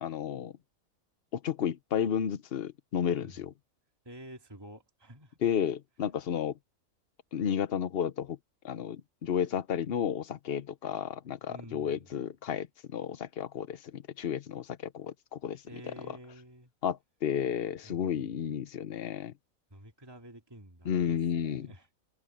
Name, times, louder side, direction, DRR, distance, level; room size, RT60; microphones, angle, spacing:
voice 1, 0.0-0.5 1.3-3.5 5.4-6.5 7.3-8.4 8.6-15.6 16.8-19.3 20.8-21.7, left 8 dB, 50° left, 0.9 m, -32 dB
voice 2, 4.0-5.4 11.5-12.2 15.7-16.7 17.8-18.3 19.7-21.9, right 1 dB, 15° right, 2.3 m, -50 dB
omnidirectional pair, 1.5 m